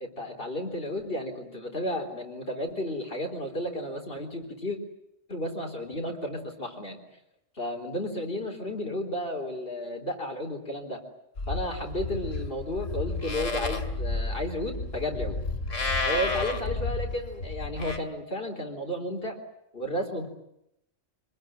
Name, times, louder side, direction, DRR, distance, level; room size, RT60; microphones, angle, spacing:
voice 1, 0.0-4.8 5.3-7.0 7.6-11.0 11.5-15.4 16.1-19.4 19.7-20.3, left 1 dB, 50° left, 3 dB, 4.2 m, -33 dB
Livestock farm animals working animals, 11.4-18.0, left 3 dB, 80° left, 2.9 m, -31 dB
26.0 x 20.5 x 9.3 m, 0.81 s
omnidirectional pair, 1.3 m